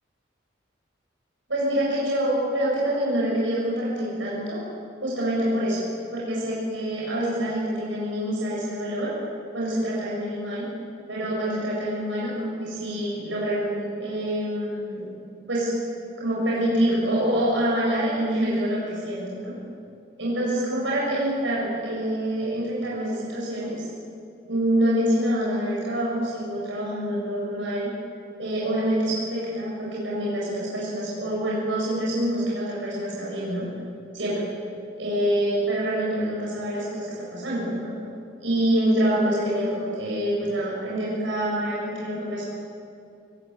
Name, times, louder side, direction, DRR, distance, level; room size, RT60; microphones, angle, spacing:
voice 1, 1.5-4.6 5.0-5.8 6.1-9.1 9.5-10.7 11.1-15.1 15.5-15.8 16.2-19.5 20.2-23.9 24.4-27.9 28.4-33.7 34.1-34.4 35.0-37.9 38.4-42.5, right 1 dB, 85° right, -6 dB, 8.0 m, -26 dB
29.0 x 19.5 x 8.2 m, 2.5 s
head